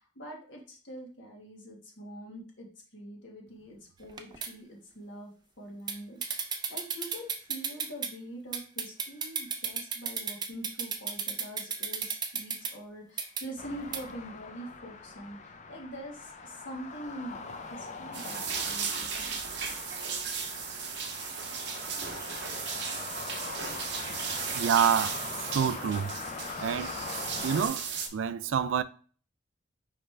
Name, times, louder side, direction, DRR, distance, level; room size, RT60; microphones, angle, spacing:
voice 1, 0.0-2.7 2.9-5.3 5.6-19.4, right 1 dB, 70° left, 1.5 m, -44 dB
sound 1, 4.0-4.5 5.9-6.0 6.2-8.1 8.5-12.7 13.2-13.4 13.9-14.0, right 6 dB, 20° right, 0.5 m, -33 dB
sound 2, 13.6-27.7, left 4 dB, 35° left, 0.5 m, -42 dB
sound 3, 18.1-28.1, right 6 dB, 60° right, 0.8 m, -36 dB
voice 2, 24.6-26.1 26.6-27.0 27.4-28.8, right 8 dB, 80° right, 0.3 m, -28 dB
5.0 x 3.1 x 3.3 m
head